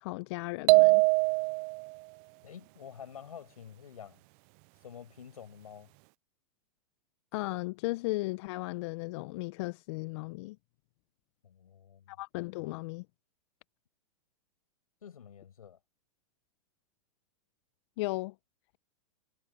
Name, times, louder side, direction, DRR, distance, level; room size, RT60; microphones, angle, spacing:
voice 1, 0.0-1.0 7.3-10.6 12.1-13.0 18.0-18.3, left 22 dB, 50° left, 0.5 m, -36 dB
sound 1, 0.7-1.9, right 32 dB, 40° right, 0.4 m, -22 dB
voice 2, 2.4-4.2 4.8-5.9 11.4-12.2 15.0-15.8, left 8 dB, 90° left, 5.5 m, -49 dB
hypercardioid pair, 120°, 18 cm